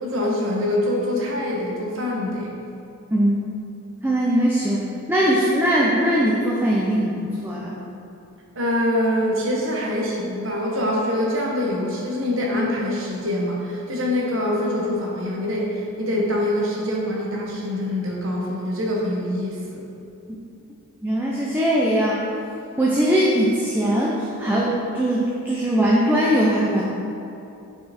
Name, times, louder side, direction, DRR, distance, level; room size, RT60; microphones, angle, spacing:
voice 1, 0.0-2.5 8.5-19.8, left 1 dB, 60° right, -2 dB, 1.1 m, -24 dB
voice 2, 4.0-4.8 5.1-7.8 21.0-22.2 22.8-26.8, equal, 10° right, -5 dB, 0.5 m, -20 dB
5.9 x 4.6 x 4.3 m, 2.8 s
head